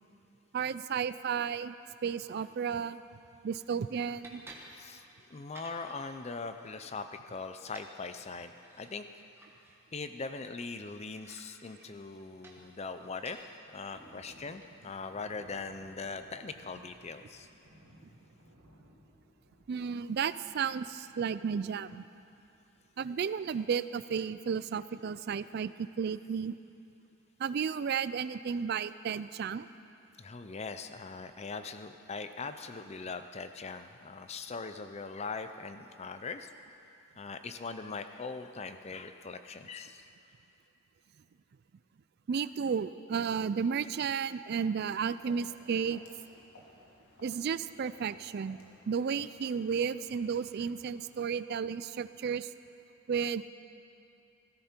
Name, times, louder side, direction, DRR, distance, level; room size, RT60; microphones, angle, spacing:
voice 1, 0.5-1.8 2.0-3.0 3.4-4.4 19.7-22.0 23.0-26.5 27.4-29.7 42.3-46.0 47.2-48.6 48.9-52.5 53.1-53.5, right 6 dB, 45° right, 15 dB, 0.3 m, -33 dB
sound 1, 3.1-15.0, right 2 dB, 10° right, 1.2 m, -57 dB
voice 2, 5.3-9.0 9.9-13.4 13.7-17.5 30.1-36.5 37.2-40.1, left 4 dB, 30° left, 9 dB, 0.5 m, -41 dB
sound 2, 13.9-22.5, equal, 85° right, 3.5 m, -61 dB
Walk footsteps, 44.9-51.5, left 1 dB, 80° left, 2.2 m, -59 dB
16.0 x 13.5 x 4.4 m, 2.7 s
head